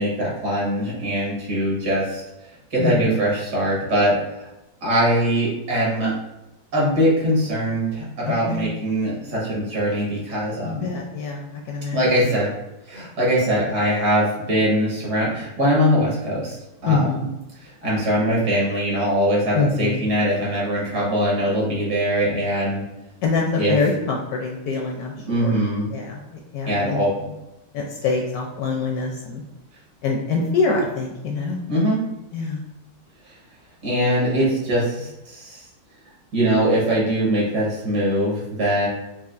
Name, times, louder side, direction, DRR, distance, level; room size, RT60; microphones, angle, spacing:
voice 1, 0.0-2.2 2.7-4.5 4.8-6.1 6.7-10.9 11.9-12.5 12.9-16.6 16.8-17.3 17.6-22.8 23.5-23.7 25.3-25.8 26.7-27.3 31.7-32.0 33.8-35.6 36.3-38.9, equal, 65° right, -5 dB, 1.8 m, -22 dB
voice 2, 8.3-8.7 10.6-12.3 16.9-17.2 19.5-20.0 23.2-25.5 25.9-27.0 27.7-29.4 30.0-31.6 32.3-32.6, left 4 dB, 70° left, 0 dB, 0.9 m, -25 dB
5.5 x 2.4 x 2.5 m, 0.94 s
omnidirectional pair, 1.9 m